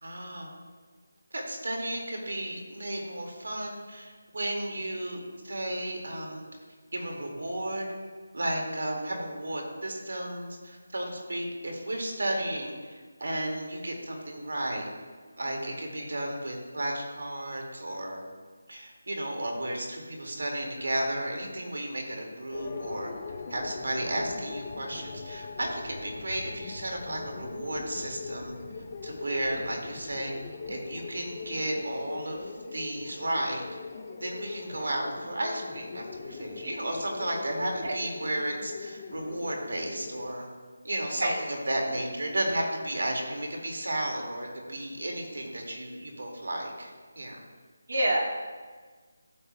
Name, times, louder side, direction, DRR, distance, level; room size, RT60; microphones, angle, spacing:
voice 1, 0.0-0.5 1.3-6.4 6.9-7.9 8.3-14.9 15.4-18.2 18.7-23.1 23.5-28.5 29.0-30.3 30.7-33.6 34.2-40.5 40.8-47.4, right 1 dB, 90° right, 1 dB, 2.0 m, -33 dB
sound 1, 22.5-40.3, left 4 dB, 25° left, 0.4 m, -41 dB
voice 2, 47.9-48.2, right 1 dB, 60° right, -1 dB, 1.8 m, -26 dB
12.0 x 7.4 x 2.2 m, 1.5 s
figure-of-eight pair, 175°, 0 cm